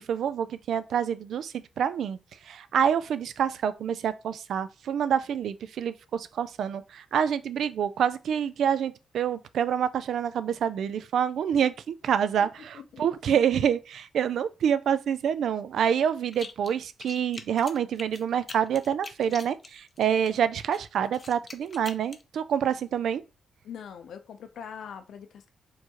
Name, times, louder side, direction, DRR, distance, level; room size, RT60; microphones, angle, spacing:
voice 1, 0.0-2.2 2.4-23.2, right 8 dB, 75° right, 0.3 m, -27 dB
sound 1, 16.3-16.7 17.0-20.3 20.7-22.2, left 3 dB, 30° left, 0.5 m, -43 dB
voice 2, 23.6-25.5, left 7 dB, 75° left, 0.5 m, -42 dB
4.5 x 3.0 x 2.9 m
cardioid pair, 115°, 0 cm